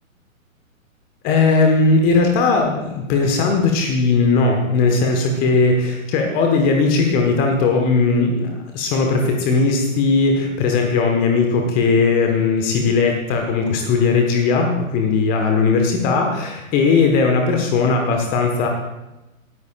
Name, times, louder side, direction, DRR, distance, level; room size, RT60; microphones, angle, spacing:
voice 1, 1.2-18.7, left 4 dB, 20° left, 2 dB, 1.2 m, -18 dB
19.5 x 13.5 x 2.4 m, 0.99 s
figure-of-eight pair, 115°, 42 cm